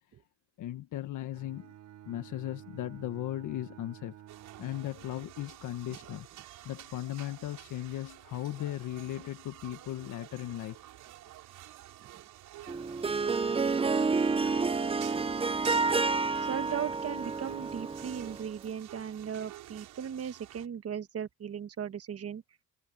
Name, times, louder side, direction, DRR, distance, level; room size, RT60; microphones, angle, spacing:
voice 1, 0.6-1.7 2.1-4.2 4.6-6.3 6.6-10.8, left 13 dB, 80° left, 1.5 m, -37 dB
Bowed string instrument, 1.3-5.6, right 12 dB, 75° right, 5.8 m, -51 dB
sound 1, 4.3-20.7, right 14 dB, 90° right, 6.4 m, -50 dB
Harp, 12.7-18.5, right 4 dB, 20° right, 0.6 m, -29 dB
voice 2, 16.4-22.4, right 8 dB, 50° right, 1.5 m, -38 dB
cardioid pair, 90°, 30 cm